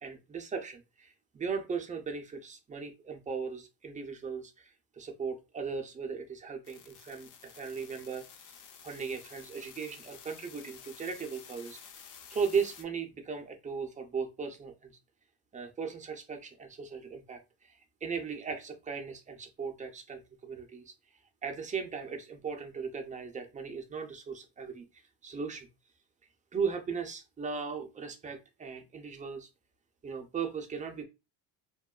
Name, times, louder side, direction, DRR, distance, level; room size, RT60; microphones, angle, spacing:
voice 1, 0.0-14.9 15.5-20.9 21.4-25.7 26.5-29.5 30.0-31.0, right 5 dB, 20° right, 4 dB, 0.3 m, -37 dB
sound 1, 6.6-12.8, left 7 dB, 45° left, 0.5 m, -52 dB
2.9 x 2.1 x 2.3 m, 0.27 s
cardioid pair, 100°, 47 cm